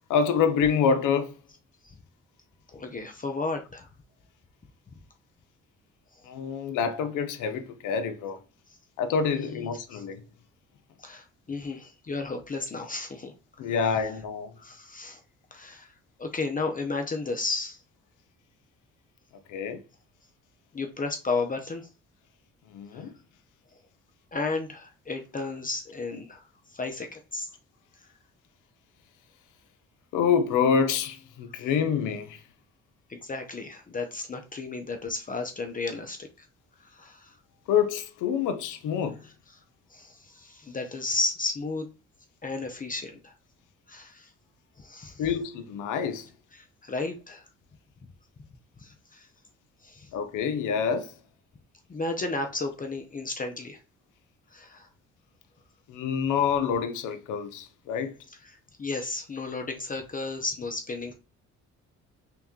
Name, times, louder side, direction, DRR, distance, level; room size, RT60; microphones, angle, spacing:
voice 1, 0.1-1.3 6.2-8.4 9.0-10.2 13.6-14.5 19.5-19.8 22.7-23.1 30.1-32.4 37.7-39.2 45.2-46.3 50.1-51.1 55.9-58.1, left 6 dB, 85° left, 0.6 m, -27 dB
voice 2, 2.7-3.9 6.1-6.2 9.3-10.0 11.0-13.3 13.7-13.8 14.6-15.2 15.5-17.8 20.7-21.9 22.9-23.0 24.3-27.5 33.1-36.5 36.8-37.3 39.9-41.9 42.4-43.3 43.9-44.3 44.8-45.2 46.5-47.5 48.8-49.3 49.8-50.1 51.9-53.8 54.5-54.9 58.4-61.1, left 3 dB, 30° left, 0.6 m, -33 dB
3.4 x 2.9 x 3.6 m
cardioid pair, 90°, 30 cm